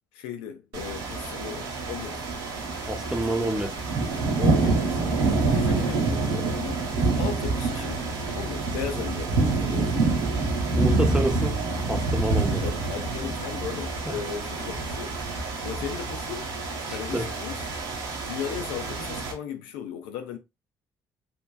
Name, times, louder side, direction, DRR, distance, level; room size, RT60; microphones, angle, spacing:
voice 1, 0.1-2.2 4.3-6.8 7.2-8.1 8.3-10.0 12.6-15.1 15.6-16.5 16.9-17.7 18.2-20.4, left 8 dB, 75° left, 0.5 m, -36 dB
sound 1, 0.7-19.3, right 3 dB, 70° right, 1.1 m, -27 dB
voice 2, 2.8-3.8 6.9-7.2 10.6-11.6 11.9-12.6 14.1-14.2 16.9-17.3, right 1 dB, 10° right, 0.8 m, -29 dB
3.5 x 2.6 x 2.2 m
hypercardioid pair, 50°, 9 cm